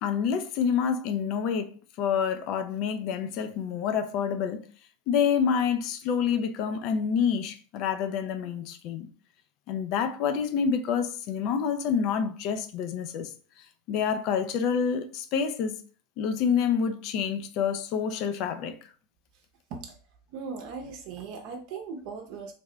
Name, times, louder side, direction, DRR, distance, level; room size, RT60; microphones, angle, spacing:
voice 1, 0.0-4.6 5.1-9.1 9.7-13.3 13.9-15.8 16.2-18.7, left 7 dB, 50° left, 0.5 m, -27 dB
voice 2, 20.3-22.5, right 5 dB, 55° right, 0.7 m, -38 dB
3.4 x 2.1 x 3.7 m
supercardioid pair, 130°, 0 cm